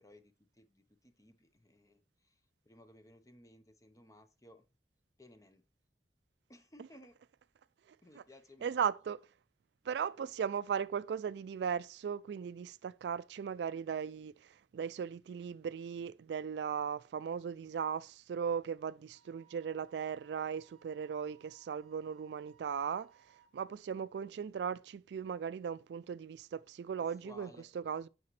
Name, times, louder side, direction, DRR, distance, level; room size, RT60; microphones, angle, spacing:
voice 1, 0.0-4.6 5.2-5.6 6.5-7.2 8.0-8.9 27.0-27.7, left 1 dB, 20° left, 0.8 m, -59 dB
voice 2, 8.6-9.2 9.9-23.1 23.5-27.5 27.9-28.1, right 7 dB, 70° right, 0.3 m, -37 dB
Wind instrument woodwind instrument, 19.1-23.6, right 10 dB, 40° right, 1.2 m, -67 dB
8.5 x 6.0 x 3.1 m
head